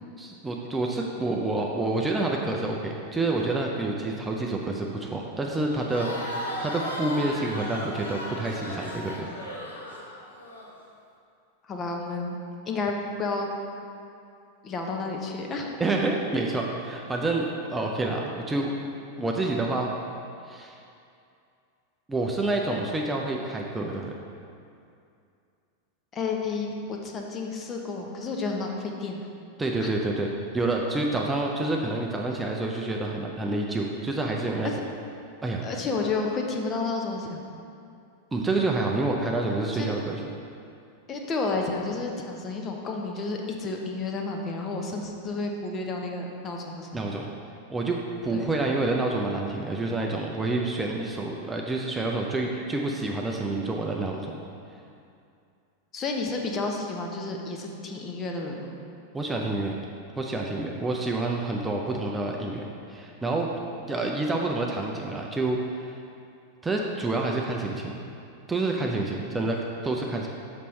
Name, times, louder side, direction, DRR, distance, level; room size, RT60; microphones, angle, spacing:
voice 1, 0.2-9.3 15.8-18.7 19.2-19.9 20.5-20.8 22.1-24.1 29.6-34.7 35.4-35.7 38.3-40.2 46.9-47.3 47.7-54.4 59.1-59.7 60.2-62.6 62.9-63.5 63.8-65.9 66.6-68.0 68.5-70.3, right 2 dB, 10° right, 0 dB, 0.5 m, -28 dB
Crowd, 5.7-10.7, left 1 dB, 75° left, 0.9 m, -35 dB
voice 2, 11.7-12.4 12.7-13.5 14.6-15.7 26.1-29.2 29.8-29.9 35.6-37.4 39.7-39.9 41.1-47.0 48.3-48.4 55.9-58.7, left 3 dB, 25° left, 1 dB, 0.7 m, -31 dB
6.7 x 5.1 x 3.1 m, 2.5 s
figure-of-eight pair, 90°, 0 cm